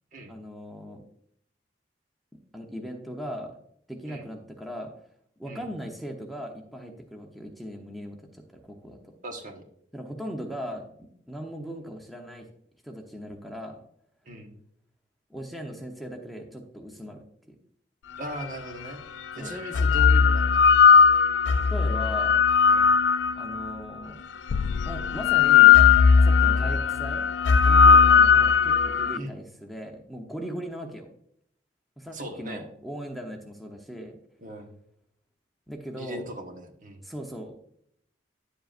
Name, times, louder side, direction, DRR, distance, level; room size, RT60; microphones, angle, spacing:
voice 1, 0.3-1.0 2.5-3.5 3.9-4.9 5.4-9.1 9.9-10.8 11.3-12.5 12.8-13.8 15.3-17.6 19.4-19.6 21.7-22.4 23.4-24.2 24.9-25.8 26.2-27.3 27.6-31.1 32.0-34.2 35.7-36.3 37.0-37.5, equal, ahead, 1 dB, 0.9 m, -38 dB
voice 2, 9.2-9.6 14.2-14.5 18.2-19.0 19.3-20.7 22.6-22.9 26.6-26.8 29.1-29.3 32.1-32.6 34.4-34.7 35.9-37.0, equal, 45° right, 3 dB, 1.3 m, -39 dB
sound 1, 18.4-18.5 19.5-23.7 24.5-29.2, left 6 dB, 75° left, 0.3 m, -18 dB
10.5 x 7.6 x 2.5 m, 0.69 s
head